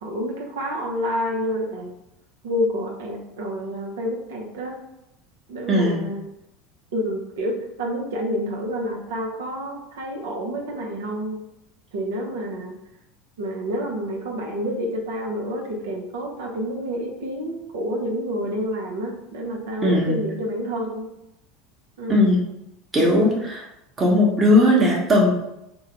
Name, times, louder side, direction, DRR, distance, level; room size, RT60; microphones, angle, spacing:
voice 1, 0.0-1.9 2.4-4.8 5.5-6.2 6.9-11.4 11.9-12.8 13.4-21.1 22.0-22.4, equal, 75° right, 0 dB, 0.7 m, -28 dB
voice 2, 5.7-6.0 19.8-20.2 22.1-22.4 22.9-23.6 24.0-25.3, left 1 dB, 25° right, -3 dB, 1.1 m, -18 dB
3.5 x 2.2 x 3.0 m, 0.86 s
hypercardioid pair, 80°, 0 cm